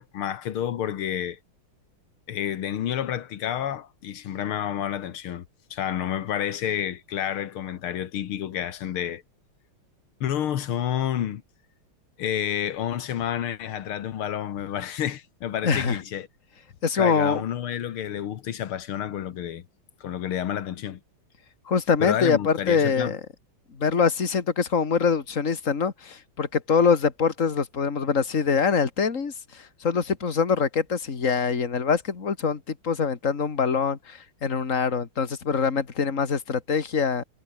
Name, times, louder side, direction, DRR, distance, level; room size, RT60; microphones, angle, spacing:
voice 1, 0.0-1.4 2.3-5.5 5.7-9.2 10.2-11.4 12.2-16.3 17.0-19.6 20.0-21.0 22.0-23.2, left 10 dB, 85° left, 2.2 m, -29 dB
voice 2, 15.6-16.0 16.8-17.4 21.7-23.2 23.7-37.2, left 6 dB, 35° left, 2.5 m, -24 dB
omnidirectional pair, 2.3 m